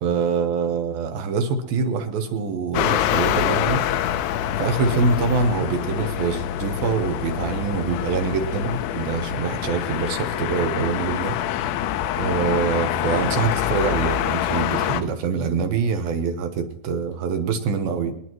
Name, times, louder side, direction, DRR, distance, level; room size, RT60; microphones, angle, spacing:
voice 1, 0.0-3.8 4.1-4.3 4.6-11.3 12.2-18.1, right 5 dB, 70° right, 7 dB, 2.6 m, -25 dB
sound 1, 2.7-15.0, left 10 dB, 85° left, 2.6 m, -25 dB
25.5 x 10.5 x 3.0 m, 0.80 s
omnidirectional pair, 4.9 m